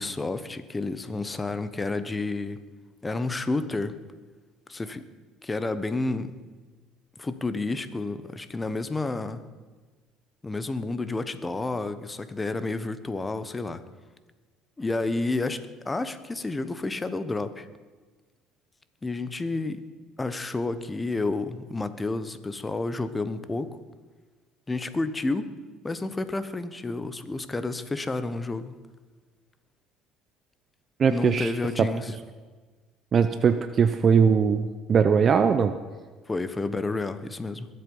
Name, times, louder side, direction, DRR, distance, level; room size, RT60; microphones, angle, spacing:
voice 1, 0.0-2.6 3.0-4.0 4.7-5.1 5.4-6.3 7.2-9.4 10.4-13.8 14.8-17.7 19.0-19.8 20.2-23.8 24.7-25.5 25.8-28.7 31.1-32.1 36.3-37.7, left 3 dB, 20° left, 13 dB, 1.1 m, -30 dB
voice 2, 31.0-31.5 31.8-31.9 33.1-35.7, right 6 dB, 45° right, 10 dB, 0.7 m, -21 dB
21.5 x 7.9 x 5.6 m, 1.4 s
supercardioid pair, 70°, 0 cm